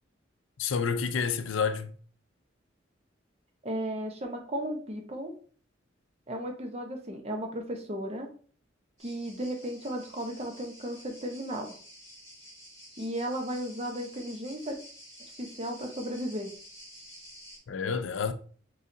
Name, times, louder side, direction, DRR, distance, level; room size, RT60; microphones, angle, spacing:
voice 1, 0.6-1.9 17.7-18.3, left 6 dB, 80° left, 0.5 m, -29 dB
voice 2, 3.6-5.3 6.3-8.3 9.0-11.8 13.0-14.8 15.4-16.5, equal, 35° right, 0.8 m, -35 dB
sound 1, 9.0-17.6, equal, 20° right, 2.0 m, -50 dB
4.8 x 4.0 x 2.6 m
head